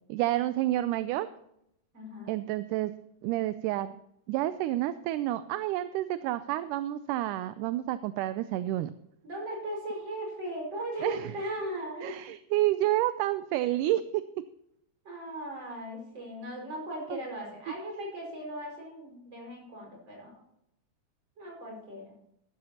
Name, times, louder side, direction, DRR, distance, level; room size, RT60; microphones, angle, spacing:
voice 1, 0.1-1.3 2.3-2.9 3.2-3.9 4.3-8.9 11.0-11.3 12.0-14.2 17.1-17.2, right 14 dB, 80° right, 13 dB, 2.0 m, -29 dB
voice 2, 1.9-2.3 9.2-12.2 15.0-20.4 21.4-22.1, equal, 35° right, -1 dB, 5.9 m, -38 dB
14.5 x 13.5 x 2.9 m, 0.77 s
omnidirectional pair, 3.8 m